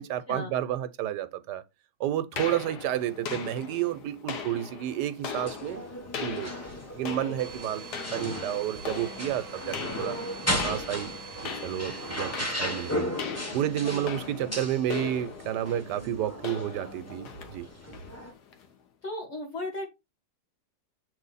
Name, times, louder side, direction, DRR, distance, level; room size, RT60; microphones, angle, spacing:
voice 1, 0.0-1.6 2.0-5.8 6.2-6.5 6.9-7.8 8.1-10.2 10.6-11.1 11.4-12.3 12.6-13.1 13.5-17.7, right 11 dB, 85° right, 1.2 m, -30 dB
sound 1, 2.4-18.7, left 7 dB, 75° left, 1.6 m, -40 dB
sound 2, 5.3-18.3, equal, 10° left, 1.0 m, -36 dB
Domestic sounds home sounds, 7.4-13.0, right 6 dB, 50° right, 0.8 m, -44 dB
voice 2, 13.8-14.6 19.0-19.9, left 2 dB, 40° left, 1.9 m, -37 dB
7.6 x 3.1 x 4.0 m
omnidirectional pair, 1.8 m